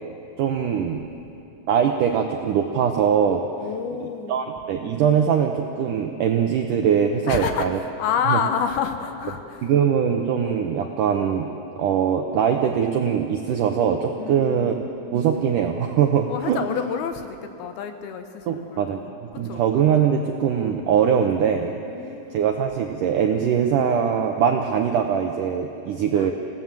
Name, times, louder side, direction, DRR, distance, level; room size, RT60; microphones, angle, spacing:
voice 1, 0.4-1.0 1.7-3.5 4.3-7.8 8.3-8.4 9.6-11.5 11.8-14.8 15.1-16.6 18.5-19.0 19.4-21.8 22.3-26.3, right 8 dB, 75° right, 3 dB, 1.9 m, -22 dB
voice 2, 3.6-4.4 7.3-9.7 14.2-14.7 16.3-19.2 19.4-19.6 21.9-22.5 26.1-26.3, left 7 dB, 75° left, 7 dB, 2.7 m, -29 dB
27.0 x 17.0 x 7.6 m, 2.7 s
omnidirectional pair, 4.9 m